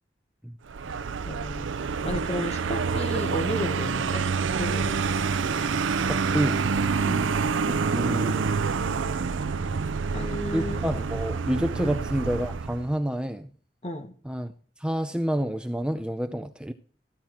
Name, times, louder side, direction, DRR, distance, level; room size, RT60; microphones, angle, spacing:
Vehicle, 0.7-12.9, right 5 dB, 85° right, 0.5 m, -27 dB
voice 1, 1.2-4.3 4.6-5.0 7.1-7.4 10.1-10.8 11.8-11.9 13.8-14.2, left 1 dB, 30° left, 1.2 m, -33 dB
voice 2, 6.1-6.7 7.9-8.5 10.5-13.5 14.2-14.5 14.8-16.7, equal, 5° right, 0.5 m, -28 dB
14.0 x 10.5 x 4.4 m
head